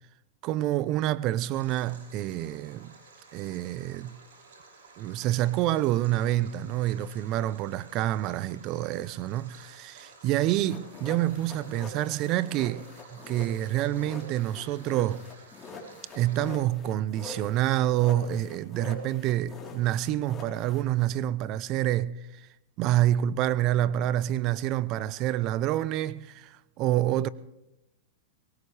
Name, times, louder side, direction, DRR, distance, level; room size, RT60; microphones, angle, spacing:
voice 1, 0.4-2.9 3.3-4.2 5.0-12.9 13.1-15.2 16.1-22.5 22.8-27.3, right 13 dB, 45° right, 0.6 m, -27 dB
Stream, 1.5-16.5, right 4 dB, 80° right, 6.2 m, -53 dB
sound 1, 10.5-21.1, left 4 dB, 20° left, 3.7 m, -45 dB
22.5 x 19.5 x 3.3 m
hypercardioid pair, 120°, 0 cm